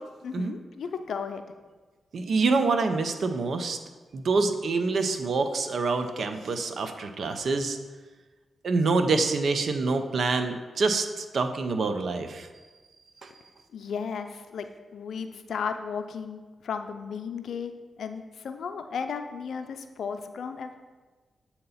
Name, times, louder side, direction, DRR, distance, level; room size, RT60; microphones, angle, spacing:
voice 1, 0.2-1.4 13.7-17.7 18.0-20.8, left 6 dB, 75° left, 8 dB, 0.4 m, -34 dB
voice 2, 2.1-3.8 4.1-7.8 8.6-12.5 13.2-13.3, right 3 dB, 70° right, 8 dB, 0.5 m, -26 dB
7.6 x 2.9 x 5.6 m, 1.3 s
supercardioid pair, 45°, 0 cm